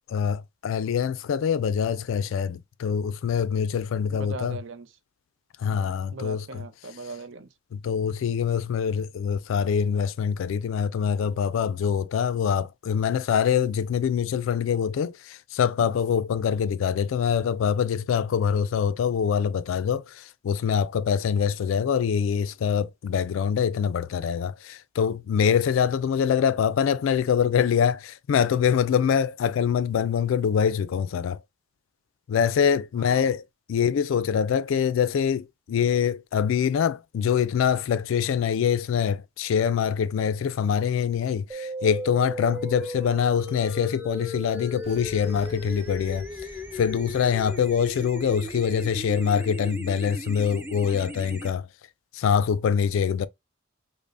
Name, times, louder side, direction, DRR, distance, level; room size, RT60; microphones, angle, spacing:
voice 1, 0.1-4.6 5.6-6.4 7.8-31.4 32.3-33.4 33.7-46.3 46.7-51.7 52.1-53.3, left 7 dB, 75° left, 0.3 m, -24 dB
voice 2, 4.1-5.0 5.7-7.5 32.9-33.4, right 3 dB, 65° right, 0.6 m, -40 dB
sound 1, 41.5-51.5, equal, 10° right, 0.4 m, -36 dB
Boom, 44.8-49.8, equal, 30° right, 1.1 m, -49 dB
5.2 x 2.1 x 2.5 m
head